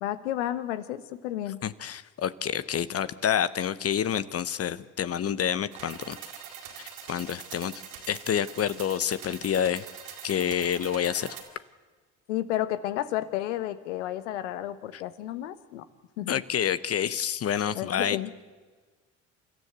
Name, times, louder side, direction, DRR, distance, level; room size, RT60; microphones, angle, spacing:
voice 1, 0.0-1.6 12.3-15.8 16.2-16.4 17.7-18.3, left 13 dB, 85° left, 13 dB, 1.1 m, -31 dB
voice 2, 1.6-6.2 6.8-9.8 10.2-11.4 14.9-15.0 16.3-18.2, left 9 dB, 45° left, 15 dB, 0.8 m, -28 dB
sound 1, 5.7-11.4, right 8 dB, 75° right, 4.3 m, -43 dB
28.0 x 13.5 x 8.1 m, 1.4 s
hypercardioid pair, 65°, 35 cm